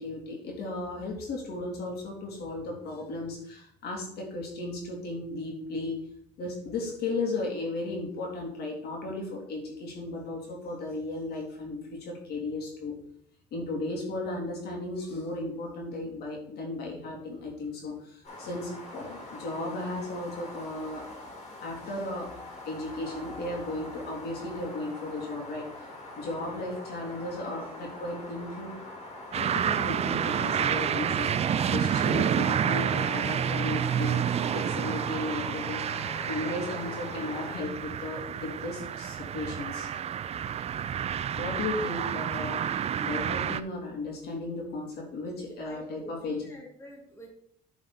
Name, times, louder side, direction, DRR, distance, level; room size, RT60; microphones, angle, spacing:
voice 1, 0.0-6.0 6.4-12.9 13.5-21.1 21.6-22.3 22.7-25.9 26.2-28.7 29.3-34.2 34.5-39.9 41.4-46.4, left 2 dB, 70° left, -1 dB, 3.2 m, -35 dB
sound 1, 18.2-37.6, left 1 dB, 40° left, 3.6 m, -43 dB
sound 2, 29.3-43.6, right 9 dB, 40° right, 0.4 m, -29 dB
voice 2, 45.4-47.3, equal, 15° left, 0 dB, 2.0 m, -48 dB
10.0 x 5.2 x 4.2 m, 0.68 s
cardioid pair, 110°, 17 cm